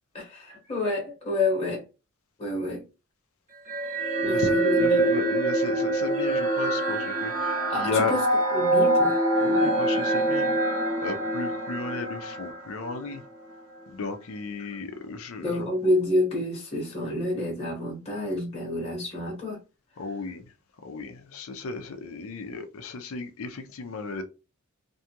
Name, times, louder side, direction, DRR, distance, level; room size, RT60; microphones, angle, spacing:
voice 1, 0.1-1.9 2.4-2.8 4.2-5.1 7.7-8.2 8.5-9.2 14.6-14.8 15.4-19.6, left 1 dB, 30° left, 1.0 m, -29 dB
sound 1, 3.7-13.2, right 1 dB, 35° right, 1.1 m, -25 dB
voice 2, 4.2-8.2 9.4-10.5 11.0-13.2 13.9-15.7 20.0-20.5 20.8-24.2, left 4 dB, 70° left, 0.5 m, -34 dB
2.7 x 2.3 x 2.8 m
head